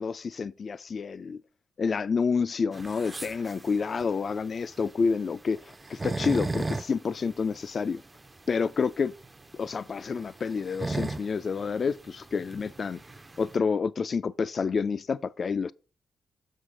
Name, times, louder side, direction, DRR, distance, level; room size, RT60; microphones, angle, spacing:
voice 1, 0.0-1.4 1.8-8.0 8.5-9.1 9.5-13.0 13.4-15.7, left 5 dB, 50° left, 0.3 m, -29 dB
sound 1, 2.7-13.6, right 2 dB, 25° right, 0.5 m, -37 dB
6.7 x 6.4 x 3.7 m
cardioid pair, 65°, 0 cm